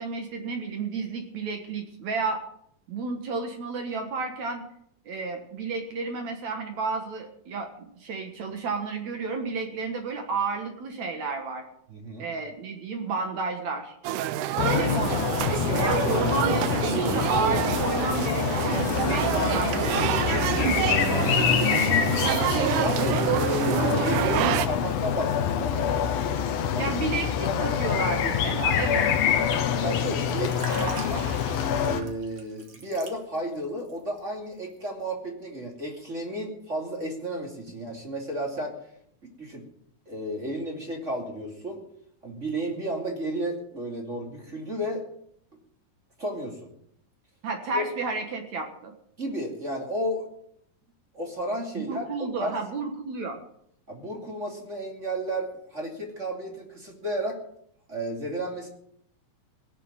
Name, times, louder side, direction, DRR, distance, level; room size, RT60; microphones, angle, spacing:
voice 1, 0.0-2.4 2.9-4.6 5.1-11.7 12.2-14.0 14.6-20.8 26.8-29.1 47.4-48.9 51.8-53.4, right 4 dB, 60° right, 5 dB, 2.5 m, -32 dB
voice 2, 11.9-12.2 22.7-25.9 26.7-26.9 29.8-31.3 31.8-38.7 39.4-39.6 40.1-41.8 42.2-45.0 46.2-46.7 47.7-47.8 49.2-50.3 51.1-52.6 53.9-57.4 57.9-58.7, right 1 dB, 20° right, 1 dB, 2.6 m, -32 dB
sound 1, 14.0-24.7, right 12 dB, 75° right, 2.0 m, -27 dB
sound 2, 14.6-32.0, left 8 dB, 80° left, 3.0 m, -26 dB
Liquid, 30.3-33.6 33.9-34.2, right 3 dB, 40° right, 2.6 m, -40 dB
18.0 x 7.0 x 9.1 m, 0.71 s
omnidirectional pair, 4.1 m